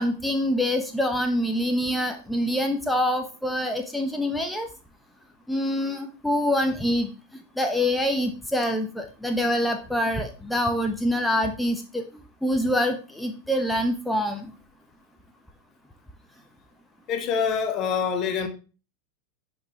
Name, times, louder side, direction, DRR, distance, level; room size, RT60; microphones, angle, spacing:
voice 1, 0.0-4.7 5.5-7.1 7.6-12.0 12.4-14.5, left 1 dB, ahead, 1.0 m, -25 dB
voice 2, 17.1-18.5, left 6 dB, 35° left, 1.2 m, -25 dB
10.0 x 5.4 x 3.0 m
figure-of-eight pair, 90°, 0 cm